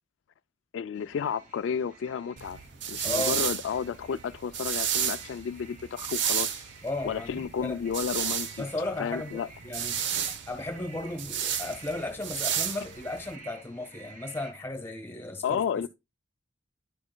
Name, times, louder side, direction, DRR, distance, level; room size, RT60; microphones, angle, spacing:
voice 1, 0.7-2.6 2.9-6.6 7.0-8.7 9.0-9.5 15.4-15.9, left 7 dB, 80° left, 0.3 m, -32 dB
sound 1, 0.9-14.5, right 3 dB, 45° right, 2.1 m, -52 dB
sound 2, 2.4-13.3, right 9 dB, 70° right, 0.8 m, -32 dB
voice 2, 3.0-3.4 6.8-7.8 8.6-10.0 10.5-15.8, left 2 dB, 10° left, 1.3 m, -35 dB
9.9 x 8.6 x 2.2 m
head